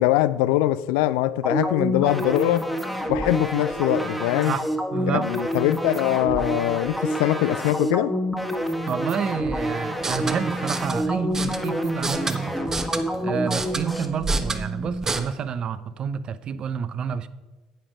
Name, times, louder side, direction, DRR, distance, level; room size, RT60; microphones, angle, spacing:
voice 1, 0.0-2.7 3.1-4.5 5.1-8.1, left 15 dB, 65° left, 0.4 m, -22 dB
sound 1, 1.4-14.1, equal, ahead, 1.5 m, -28 dB
voice 2, 4.9-5.3 8.9-12.6 13.2-17.3, right 7 dB, 40° right, 0.7 m, -29 dB
sound 2, 9.9-15.2, right 3 dB, 25° right, 1.1 m, -30 dB
10.0 x 8.7 x 5.1 m
figure-of-eight pair, 60°, 2 cm